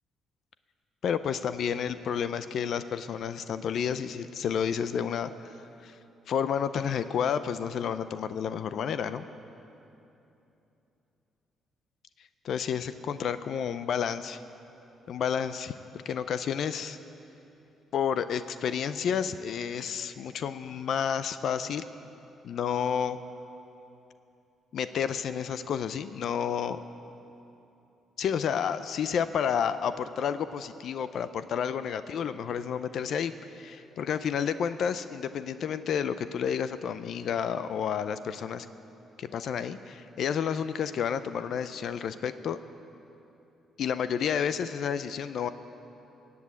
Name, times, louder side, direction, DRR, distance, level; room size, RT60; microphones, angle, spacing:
voice 1, 1.0-5.6 5.8-6.0 6.3-9.2 12.4-14.4 15.1-15.7 16.1-17.0 17.9-21.8 22.4-23.2 24.7-26.8 28.2-38.7 39.2-42.6 43.8-45.5, left 7 dB, 65° left, 12 dB, 0.5 m, -30 dB
16.5 x 8.4 x 8.3 m, 2.9 s
cardioid pair, 90°, 0 cm